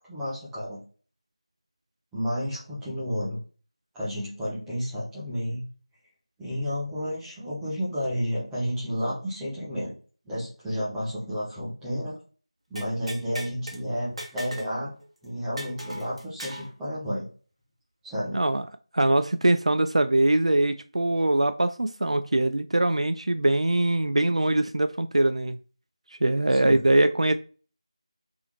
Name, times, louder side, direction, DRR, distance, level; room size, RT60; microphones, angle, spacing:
voice 1, 0.1-0.8 2.1-3.4 3.9-5.7 6.4-9.9 10.3-12.1 12.7-14.9 15.2-17.3 18.0-18.4 26.5-26.8, equal, ahead, 0.4 m, -31 dB
sound 1, 12.8-13.8 14.2-14.7 15.0-15.1 15.6-16.7, right 1 dB, 70° right, 1.4 m, -38 dB
voice 2, 18.3-18.6 18.9-25.6 26.1-27.3, right 1 dB, 85° right, 0.4 m, -22 dB
3.5 x 3.4 x 3.0 m
figure-of-eight pair, 175°, 3 cm